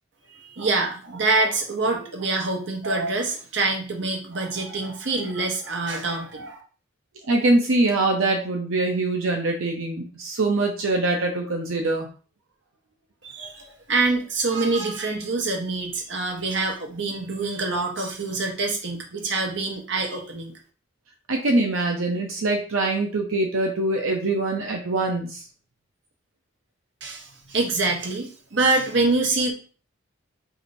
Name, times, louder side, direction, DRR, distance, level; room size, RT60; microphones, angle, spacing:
voice 1, 0.3-6.6 13.2-20.5 27.0-29.5, right 3 dB, 60° right, 1 dB, 0.9 m, -25 dB
voice 2, 7.2-12.1 21.3-25.4, right 2 dB, 90° right, 2 dB, 0.6 m, -23 dB
4.8 x 2.6 x 2.6 m, 0.39 s
head